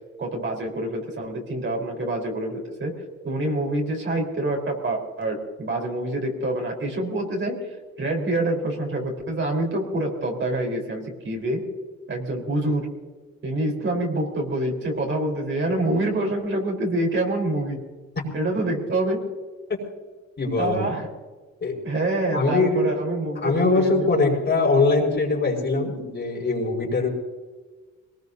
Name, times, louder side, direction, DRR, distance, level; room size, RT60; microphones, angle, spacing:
voice 1, 0.2-2.9 3.2-7.6 8.0-11.6 12.1-12.9 13.4-17.8 18.3-19.2 20.6-21.1 21.8-24.1, right 1 dB, 40° right, 0 dB, 4.3 m, -26 dB
voice 2, 20.4-20.9 21.6-21.8 22.3-22.9 23.4-27.1, left 3 dB, 35° left, -1 dB, 5.4 m, -22 dB
22.5 x 19.5 x 2.8 m, 1.3 s
cardioid pair, 90°, 30 cm